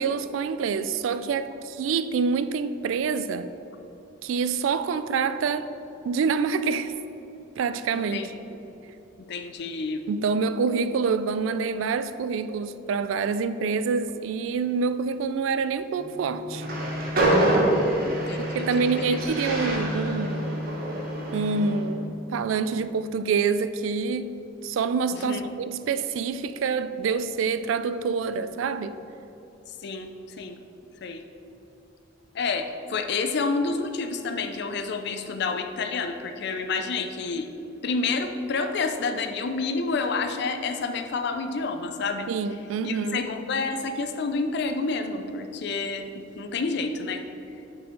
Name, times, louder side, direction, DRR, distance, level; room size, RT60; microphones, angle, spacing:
voice 1, 0.0-3.5 4.2-5.7 6.0-6.9 7.6-8.2 10.1-16.7 18.4-20.6 21.3-29.0 42.3-43.3, right 5 dB, 90° right, 12 dB, 0.3 m, -26 dB
voice 2, 7.9-8.3 9.3-10.0 18.0-18.6 19.1-19.2 25.1-25.4 29.8-30.1 30.4-30.6 31.0-31.2 32.3-37.5 37.8-42.3 42.8-47.2, left 4 dB, 60° left, 7 dB, 0.5 m, -29 dB
sound 1, 16.0-22.0, left 1 dB, 5° left, 0.7 m, -35 dB
Train, 16.5-21.8, right 1 dB, 50° right, 1.0 m, -26 dB
6.3 x 4.8 x 3.8 m, 3.0 s
head